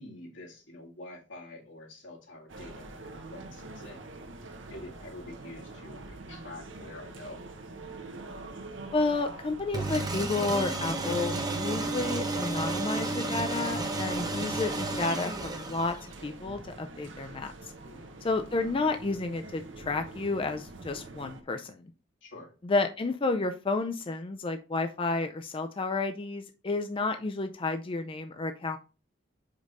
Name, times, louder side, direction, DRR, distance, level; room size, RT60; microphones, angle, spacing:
voice 1, 0.0-4.0 4.7-7.4 17.8-18.1 22.2-22.5, left 1 dB, 85° left, -1 dB, 2.0 m, -47 dB
sound 1, 2.5-21.4, right 2 dB, 80° right, 1.0 m, -45 dB
voice 2, 8.9-16.0 16.2-17.5 18.2-21.8 22.6-28.8, left 3 dB, 30° left, 6 dB, 0.4 m, -31 dB
sound 2, 9.7-16.3, right 2 dB, 20° right, 0.9 m, -32 dB
5.2 x 4.9 x 4.0 m, 0.33 s
head